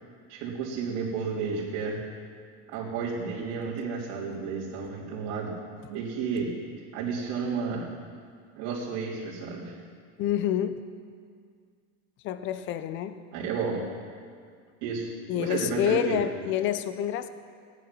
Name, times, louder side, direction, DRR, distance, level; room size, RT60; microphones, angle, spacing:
voice 1, 0.3-2.0 2.7-5.5 5.9-6.5 6.9-7.9 8.6-9.7 13.3-13.8 14.8-16.2, right 5 dB, 55° right, -7 dB, 3.5 m, -32 dB
voice 2, 10.2-10.8 12.2-13.1 15.3-17.3, left 11 dB, 30° left, 12 dB, 0.6 m, -28 dB
16.0 x 10.5 x 6.1 m, 2.1 s
supercardioid pair, 150°, 42 cm